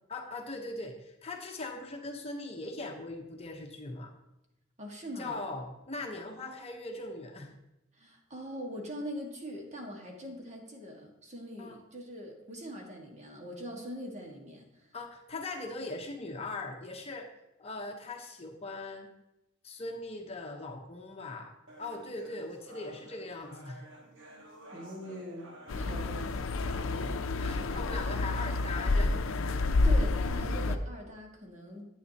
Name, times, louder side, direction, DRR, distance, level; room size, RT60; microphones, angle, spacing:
voice 1, 0.1-4.1 5.2-7.5 11.6-11.8 14.9-17.3 17.6-19.1 19.6-23.8 26.0-26.2 26.7-29.6, left 2 dB, 30° left, 2 dB, 0.9 m, -40 dB
voice 2, 4.8-5.4 7.9-14.7 24.7-25.5 25.7-26.8 29.7-31.9, equal, 35° right, 1 dB, 1.6 m, -42 dB
sound 1, 21.7-29.7, right 1 dB, 65° right, 1.4 m, -51 dB
sound 2, 25.7-30.8, left 3 dB, 80° left, 0.5 m, -29 dB
10.0 x 8.7 x 2.8 m, 0.91 s
head